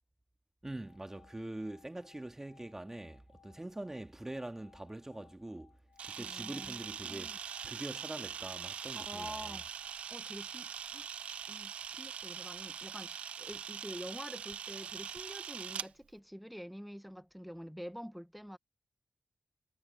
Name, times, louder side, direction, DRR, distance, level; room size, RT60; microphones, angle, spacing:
voice 1, 0.6-5.8 6.0-9.6, right 1 dB, 20° right, 2.4 m, -44 dB
sound 1, 0.7-10.9, left 7 dB, 90° left, 1.9 m, -66 dB
Camera, 6.0-15.9, right 8 dB, 85° right, 0.4 m, -42 dB
voice 2, 6.2-7.4 8.9-9.6 10.1-11.1 11.5-18.6, equal, ahead, 1.0 m, -47 dB
cardioid pair, 45°, 2 cm